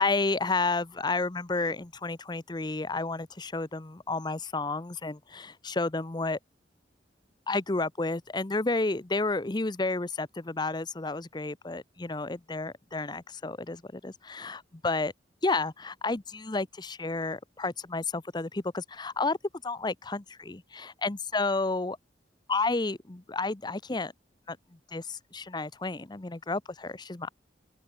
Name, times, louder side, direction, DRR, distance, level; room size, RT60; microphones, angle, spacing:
voice 1, 0.0-6.4 7.5-15.1 15.4-19.4 19.6-22.0 22.5-24.1 24.5-24.6 24.9-27.3, left 3 dB, 25° left, 0.8 m, -31 dB
open air
head